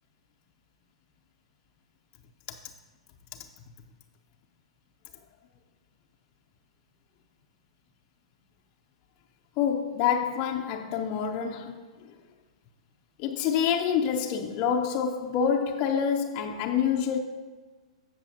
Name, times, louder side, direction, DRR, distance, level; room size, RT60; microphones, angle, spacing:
voice 1, 9.6-12.1 13.2-17.2, left 7 dB, 35° left, 0.7 m, -27 dB
15.5 x 6.1 x 2.8 m
hypercardioid pair, 115°, 3 cm